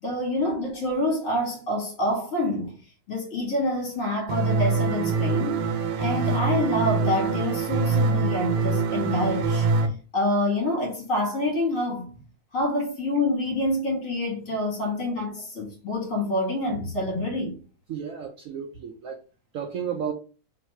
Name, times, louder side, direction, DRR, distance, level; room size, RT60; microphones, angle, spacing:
voice 1, 0.0-2.7 3.1-5.6 6.0-9.7 10.1-12.1 12.5-17.6, left 1 dB, 50° left, 1.7 m, -27 dB
sound 1, 4.3-9.9, right 4 dB, 85° right, 1.3 m, -24 dB
voice 2, 17.9-19.2 19.5-20.1, right 7 dB, 70° right, 0.8 m, -33 dB
3.2 x 2.6 x 4.3 m
omnidirectional pair, 1.9 m